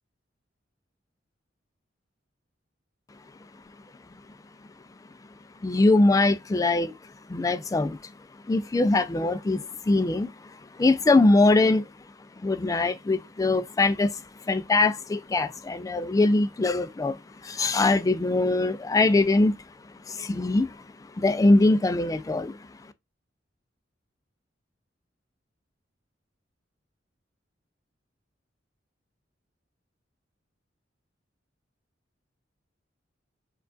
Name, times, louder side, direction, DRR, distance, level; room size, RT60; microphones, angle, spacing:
voice 1, 5.6-6.9 7.3-8.1 8.5-10.3 10.7-11.9 12.4-19.6 20.1-20.8 21.2-22.6, left 2 dB, 20° left, 0.3 m, -22 dB
4.5 x 2.4 x 2.4 m
head